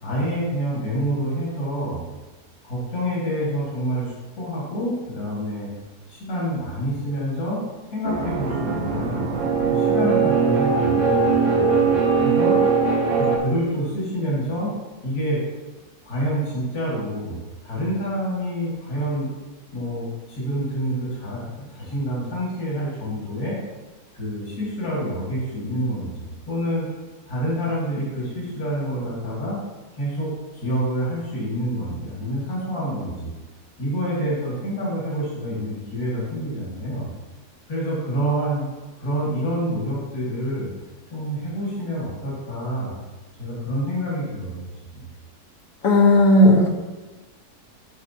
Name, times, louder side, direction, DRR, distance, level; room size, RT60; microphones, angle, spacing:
voice 1, 0.0-2.0 2.6-5.7 6.1-7.6 7.9-9.2 9.7-12.6 13.2-14.7 15.0-15.4 16.0-19.3 19.7-23.6 24.1-26.9 27.3-29.6 30.0-33.3 33.8-37.1 37.7-38.7 39.0-40.7 41.1-43.0 43.4-44.7 44.9-45.1, equal, 80° left, -7 dB, 2.6 m, -27 dB
sound 1, 8.0-13.4, right 5 dB, 55° right, 1.1 m, -20 dB
voice 2, 45.8-46.7, left 1 dB, 65° left, 1 dB, 1.4 m, -14 dB
11.0 x 4.8 x 2.7 m, 1.2 s
omnidirectional pair, 1.6 m